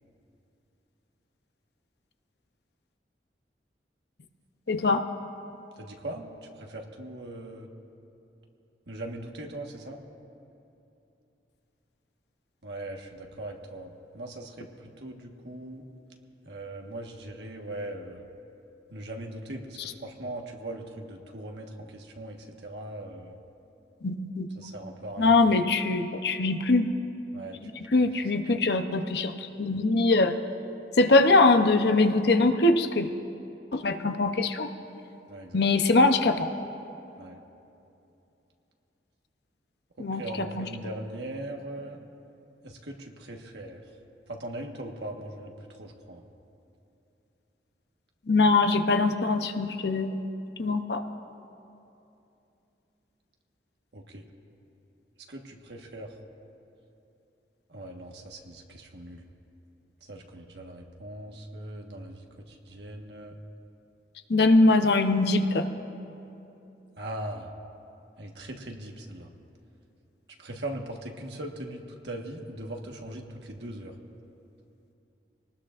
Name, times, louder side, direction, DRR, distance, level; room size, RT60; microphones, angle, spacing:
voice 1, 4.7-5.0 19.8-19.9 24.0-24.7 25.2-26.9 27.6-30.3 31.0-33.1 33.7-34.7 35.5-36.5 40.0-40.7 48.3-50.2 50.6-51.0 64.3-65.7, left 3 dB, 70° left, 7 dB, 0.8 m, -23 dB
voice 2, 5.8-6.3 6.6-7.7 8.9-10.0 12.6-14.7 15.0-15.8 16.4-18.2 18.9-22.4 22.6-23.3 24.6-25.6 27.3-27.9 35.3-35.6 37.2-37.4 40.0-42.0 42.6-43.8 44.3-45.5 45.8-46.2 53.9-54.2 55.3-56.1 57.7-59.2 60.1-62.2 62.7-63.3 67.0-67.5 68.2-69.3 70.4-73.9, right 1 dB, 75° right, 1 dB, 1.5 m, -40 dB
24.0 x 19.0 x 2.5 m, 2.8 s
head